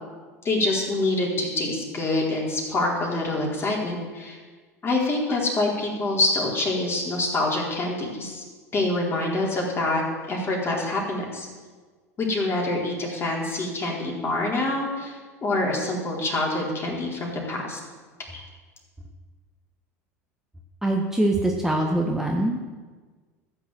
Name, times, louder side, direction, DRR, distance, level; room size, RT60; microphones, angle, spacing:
voice 1, 0.4-4.4 4.8-8.4 8.7-10.0 10.3-11.5 12.2-17.8 18.3-18.4, left 2 dB, 30° left, -2 dB, 4.3 m, -26 dB
voice 2, 20.8-22.7, right 1 dB, 5° right, 1 dB, 1.4 m, -23 dB
14.5 x 7.2 x 7.7 m, 1.4 s
hypercardioid pair, 80°, 8 cm